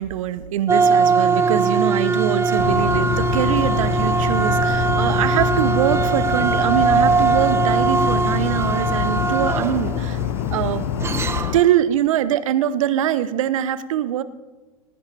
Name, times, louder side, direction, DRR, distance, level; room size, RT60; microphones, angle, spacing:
voice 1, 0.0-10.2 10.5-11.1 11.5-14.2, right 11 dB, 65° right, 14 dB, 0.9 m, -23 dB
sound 1, 0.7-11.7, right 4 dB, 15° right, 0.9 m, -21 dB
sound 2, 2.6-11.6, left 13 dB, 55° left, 0.6 m, -26 dB
18.5 x 9.6 x 4.3 m, 1.3 s
hypercardioid pair, 110°, 18 cm